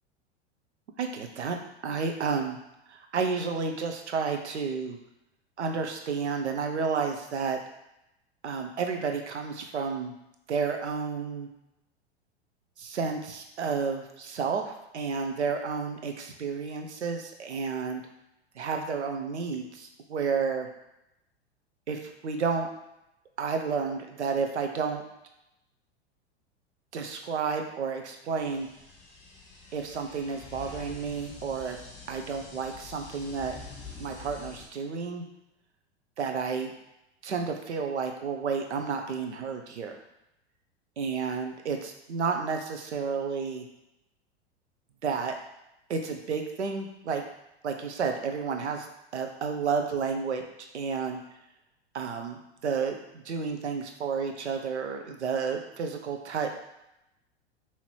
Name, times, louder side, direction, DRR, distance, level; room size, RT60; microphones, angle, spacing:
voice 1, 1.0-1.6 1.8-2.6 2.9-5.0 5.6-7.6 8.4-10.1 10.5-11.5 12.8-18.0 18.6-20.7 21.9-22.7 23.4-25.0 26.9-28.7 29.7-31.8 32.1-33.6 34.0-35.2 36.2-36.7 37.2-40.0 41.0-43.6 45.0-45.4 45.9-47.2 47.6-48.9 49.1-50.4 50.7-51.2 51.9-56.6, right 5 dB, 85° right, 4 dB, 0.7 m, -31 dB
sound 1, 28.3-34.7, left 5 dB, 25° left, 1.6 m, -46 dB
5.6 x 2.9 x 3.0 m, 0.86 s
hypercardioid pair, 100°, 33 cm